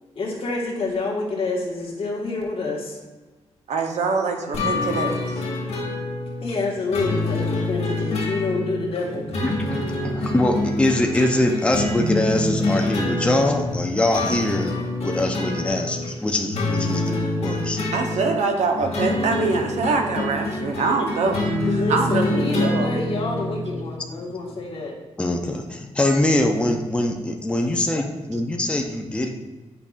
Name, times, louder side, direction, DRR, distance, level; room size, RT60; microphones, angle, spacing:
voice 1, 0.0-3.0 6.4-9.2 21.7-24.9, left 3 dB, 55° left, -3 dB, 1.6 m, -27 dB
voice 2, 3.7-5.4 17.9-21.3 21.7-22.9, right 4 dB, 85° right, 4 dB, 0.8 m, -24 dB
sound 1, 4.5-23.7, left 2 dB, 75° left, 1.9 m, -26 dB
voice 3, 9.4-14.7 15.0-17.8 25.2-29.3, left 1 dB, 10° left, 2 dB, 0.5 m, -23 dB
8.5 x 5.3 x 2.4 m, 1.2 s
wide cardioid pair, 120°, 11 cm